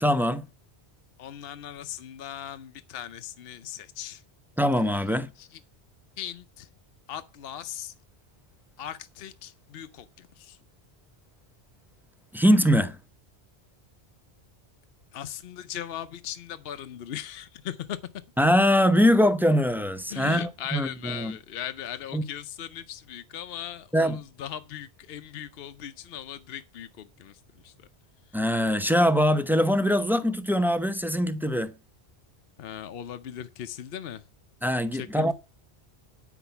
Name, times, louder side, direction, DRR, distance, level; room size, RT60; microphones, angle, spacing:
voice 1, 0.0-0.4 4.6-5.3 12.3-13.0 18.4-21.4 22.1-22.2 23.9-24.2 28.3-31.7 34.6-35.3, equal, ahead, 0.6 m, -22 dB
voice 2, 1.2-4.2 5.4-5.5 6.2-6.7 7.1-7.9 8.8-10.1 10.4-10.6 15.1-18.0 20.1-27.3 27.6-27.7 32.6-34.2 34.9-35.3, left 10 dB, 65° left, 0.9 m, -38 dB
9.0 x 6.0 x 6.8 m
omnidirectional pair, 1.1 m